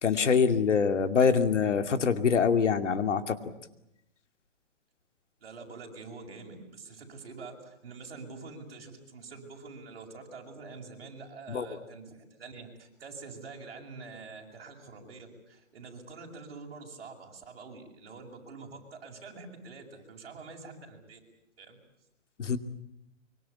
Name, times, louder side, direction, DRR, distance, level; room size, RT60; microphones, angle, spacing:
voice 1, 0.0-3.4 11.5-11.7 22.4-22.6, left 6 dB, 70° left, 9 dB, 2.6 m, -24 dB
voice 2, 5.4-21.2 21.6-21.8, right 4 dB, 50° right, 1 dB, 7.7 m, -46 dB
25.0 x 24.5 x 8.5 m, 0.82 s
hypercardioid pair, 170°, 37 cm